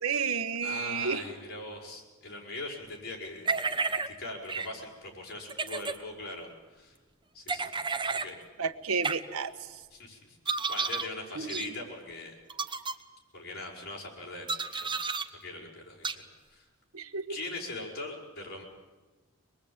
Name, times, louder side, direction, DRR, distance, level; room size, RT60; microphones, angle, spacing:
voice 1, 0.0-1.2 8.6-9.5 11.4-11.7 16.9-17.4, right 5 dB, 90° right, 10 dB, 1.2 m, -31 dB
voice 2, 0.6-7.0 7.3-7.7 8.1-8.4 9.9-12.4 13.3-14.9 15.4-16.7 17.3-18.6, left 2 dB, 50° left, -1 dB, 5.9 m, -41 dB
sound 1, 3.4-4.1 4.5-4.7 5.5-6.0 7.5-8.3 9.0-9.2 10.4-11.1 11.5-11.7 12.5-12.9 14.5-15.2 16.0-16.1, right 4 dB, 25° right, 1.1 m, -31 dB
24.0 x 21.0 x 8.8 m, 1.3 s
head